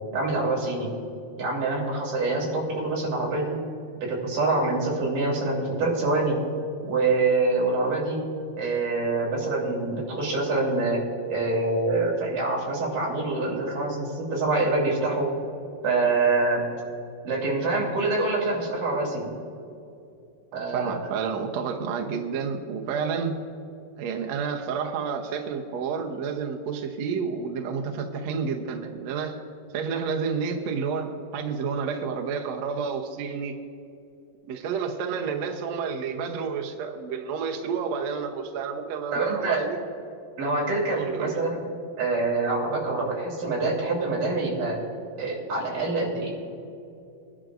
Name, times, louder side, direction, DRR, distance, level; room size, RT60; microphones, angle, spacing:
voice 1, 0.1-0.9 1.4-3.6 4.0-6.4 6.8-8.2 8.6-11.0 11.3-15.3 15.8-16.6 17.2-19.3 20.5-21.0 39.1-39.7 40.4-41.6 42.0-44.8 45.2-46.3, right 3 dB, 60° right, -3 dB, 4.5 m, -25 dB
voice 2, 20.7-23.4 24.0-29.4 29.7-33.6 34.5-39.8 40.9-41.4, right 6 dB, 75° right, 3 dB, 1.6 m, -30 dB
23.0 x 11.0 x 2.6 m, 2.6 s
omnidirectional pair, 4.2 m